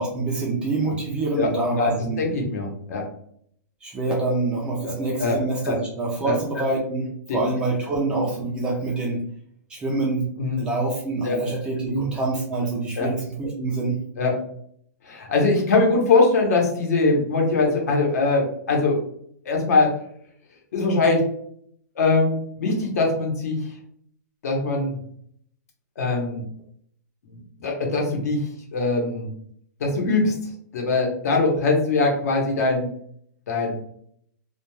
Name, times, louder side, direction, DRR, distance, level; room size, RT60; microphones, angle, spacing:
voice 1, 0.0-2.2 3.8-9.2 9.7-10.3 10.6-14.0, right 3 dB, 10° right, -3 dB, 0.3 m, -26 dB
voice 2, 1.7-3.0 4.8-4.9 5.2-5.4 5.6-5.8 6.2-6.7 7.3-7.4 10.4-10.6 11.2-11.4 11.9-12.1 13.0-13.1 14.2-14.3 15.0-19.0 19.4-19.9 20.7-21.3 22.0-23.6 24.4-25.0 26.0-26.4 27.3-29.3 29.8-30.3 30.7-32.9 33.5-33.7, left 3 dB, 60° left, 0 dB, 0.9 m, -22 dB
2.3 x 2.2 x 3.1 m, 0.66 s
hypercardioid pair, 170°, 10 cm